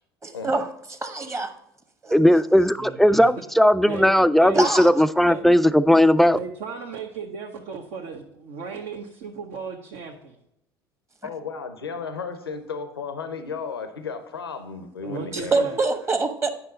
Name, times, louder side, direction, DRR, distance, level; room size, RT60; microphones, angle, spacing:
voice 1, 0.2-0.6 0.9-1.5 4.5-4.9 15.3-16.5, right 3 dB, 20° right, 7 dB, 1.2 m, -24 dB
voice 2, 2.1-6.4, equal, ahead, 15 dB, 0.3 m, -17 dB
voice 3, 2.8-3.4 3.8-4.1 4.4-4.7 5.2-5.4 6.3-10.1 15.0-15.8, right 5 dB, 60° right, 0 dB, 1.0 m, -35 dB
voice 4, 11.2-15.6, left 5 dB, 90° left, 9 dB, 0.7 m, -34 dB
9.7 x 5.7 x 4.0 m, 0.80 s
figure-of-eight pair, 65°, 12 cm